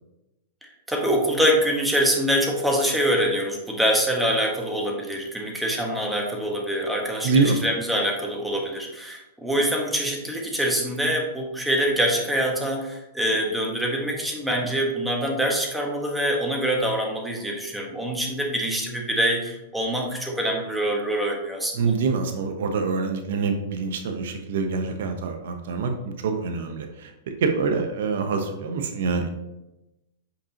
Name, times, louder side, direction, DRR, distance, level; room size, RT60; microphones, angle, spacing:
voice 1, 0.6-21.8, equal, 5° right, 0 dB, 1.6 m, -25 dB
voice 2, 7.2-7.6 21.7-27.1 27.4-29.3, right 4 dB, 70° right, 5 dB, 0.9 m, -25 dB
8.4 x 5.1 x 2.9 m, 0.96 s
hypercardioid pair, 110°, 0 cm